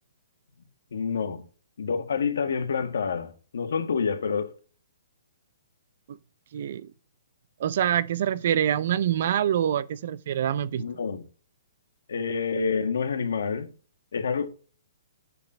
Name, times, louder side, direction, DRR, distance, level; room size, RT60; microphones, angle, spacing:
voice 1, 0.9-1.4 1.8-4.5 10.7-11.2 12.1-13.7 14.1-14.5, left 5 dB, 70° left, 1.7 m, -28 dB
voice 2, 6.5-6.9 7.6-10.8, right 10 dB, 45° right, 0.6 m, -25 dB
8.3 x 5.3 x 7.0 m
hypercardioid pair, 165°, 0 cm